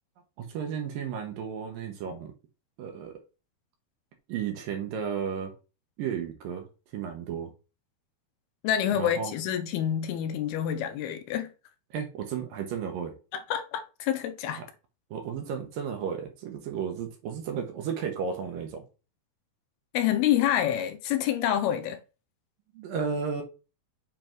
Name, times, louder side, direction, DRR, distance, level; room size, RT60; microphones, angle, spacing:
voice 1, 0.4-2.3 2.8-3.2 4.3-5.5 6.0-6.7 6.9-7.5 8.9-9.3 11.9-13.1 15.1-18.8 22.7-23.4, right 7 dB, 70° right, 2.6 m, -33 dB
voice 2, 8.6-11.5 13.3-14.6 19.9-22.0, left 10 dB, 80° left, 2.5 m, -27 dB
7.8 x 3.5 x 4.5 m
omnidirectional pair, 4.6 m